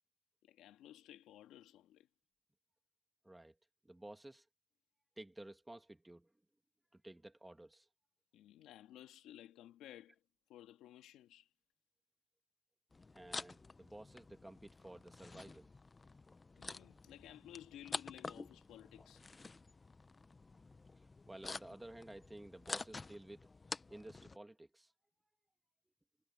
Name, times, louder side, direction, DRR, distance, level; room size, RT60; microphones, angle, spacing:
voice 1, 0.4-2.1 8.3-10.2 10.5-11.5 16.6-19.2, left 12 dB, 90° left, 2.0 m, -56 dB
voice 2, 3.2-3.5 3.8-4.4 5.2-6.3 6.9-7.9 13.1-15.7 21.0-23.5 23.9-24.9, right 1 dB, 10° right, 2.6 m, -53 dB
sound 1, 12.9-24.4, left 3 dB, 25° left, 0.7 m, -49 dB
cardioid pair, 90°, 0 cm